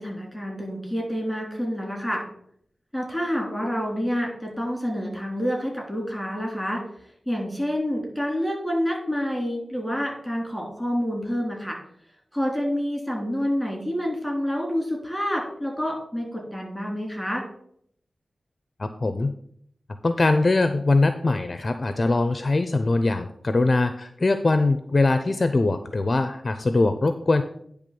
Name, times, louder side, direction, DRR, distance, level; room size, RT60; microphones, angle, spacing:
voice 1, 0.0-2.2 2.9-6.8 7.3-11.8 12.3-17.4, equal, 5° left, -1 dB, 3.6 m, -28 dB
voice 2, 18.8-19.3 20.0-27.4, left 2 dB, 40° left, 9 dB, 0.6 m, -22 dB
9.9 x 3.5 x 6.9 m, 0.67 s
wide cardioid pair, 75°, 0 cm